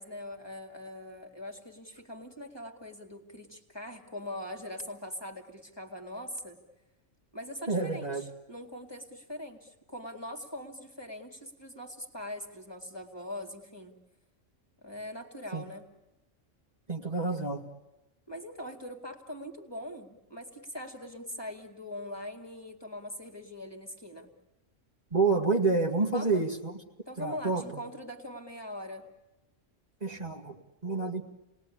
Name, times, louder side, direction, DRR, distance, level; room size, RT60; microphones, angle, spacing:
voice 1, 0.0-6.6 7.3-13.9 14.8-15.9 18.3-24.3 26.1-26.5 27.1-29.1, left 1 dB, 20° left, 2 dB, 2.3 m, -42 dB
voice 2, 7.7-8.2 15.5-15.6 16.9-17.6 25.1-26.7 27.2-27.6 30.0-30.6 30.8-31.2, right 3 dB, 30° right, 0 dB, 2.2 m, -28 dB
29.0 x 19.5 x 9.9 m, 1.0 s
omnidirectional pair, 1.3 m